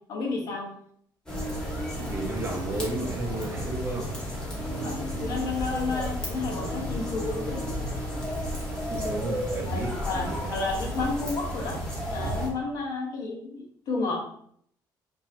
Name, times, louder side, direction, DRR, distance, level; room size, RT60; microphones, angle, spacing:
voice 1, 0.1-0.7 4.8-4.9 5.2-7.7 9.7-11.8 12.1-14.2, left 3 dB, 50° left, 1.0 m, -31 dB
sound 1, 1.3-12.5, equal, 10° left, 1.1 m, -32 dB
voice 2, 2.0-5.1 8.9-10.6, right 2 dB, 30° right, 0.7 m, -34 dB
5.5 x 2.7 x 2.7 m
cardioid pair, 175°, 8 cm